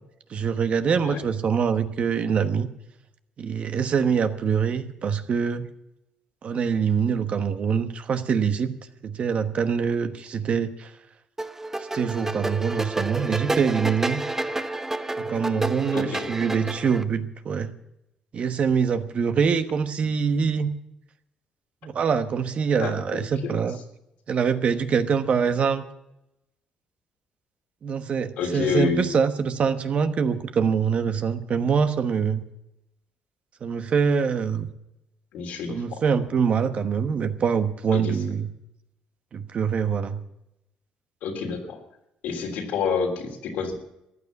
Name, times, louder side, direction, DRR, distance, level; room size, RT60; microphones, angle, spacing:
voice 1, 0.3-2.7 3.4-5.7 6.4-8.7 9.0-10.9 11.8-14.2 15.2-17.7 18.3-20.7 21.8-23.8 24.3-25.8 27.8-32.4 33.6-34.7 35.7-38.5 39.3-40.2, right 6 dB, 50° right, 9 dB, 1.2 m, -24 dB
sound 1, 11.4-17.0, right 2 dB, 15° right, 0.8 m, -30 dB
voice 2, 15.9-16.3 22.8-23.5 28.4-29.1 35.3-36.0 37.9-38.2 41.2-41.8 42.2-43.8, left 5 dB, 80° left, 2 dB, 3.4 m, -28 dB
15.0 x 9.7 x 8.3 m, 0.85 s
cardioid pair, 90°, 3 cm